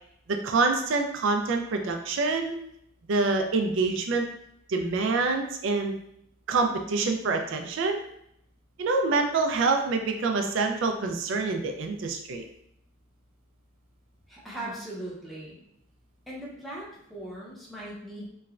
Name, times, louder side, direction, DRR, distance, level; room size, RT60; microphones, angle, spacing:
voice 1, 0.3-2.6 3.1-4.3 4.7-6.0 6.5-8.0 8.8-12.4, right 3 dB, 65° right, 4 dB, 0.4 m, -26 dB
voice 2, 14.3-15.6 16.3-18.3, right 1 dB, ahead, -6 dB, 0.6 m, -39 dB
3.1 x 2.1 x 2.4 m, 0.75 s
head